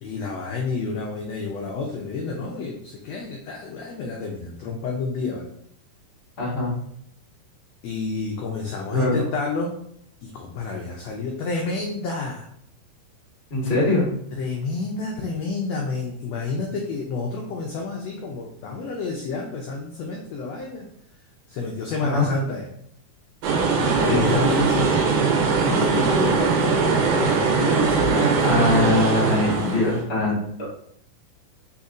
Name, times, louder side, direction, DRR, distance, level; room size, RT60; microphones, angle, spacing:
voice 1, 0.0-5.5 7.8-9.7 10.2-12.5 14.3-20.9 21.5-22.7 23.8-25.1 25.6-29.8 30.6-30.7, left 4 dB, 85° left, 0 dB, 1.4 m, -29 dB
voice 2, 6.4-6.7 8.9-9.2 13.5-14.1 22.0-22.3 24.1-24.4 28.4-30.7, left 2 dB, 50° left, -4 dB, 0.7 m, -22 dB
sound 1, 23.4-30.0, right 5 dB, 80° right, 2.3 m, -21 dB
4.2 x 4.1 x 2.4 m, 0.68 s
omnidirectional pair, 3.7 m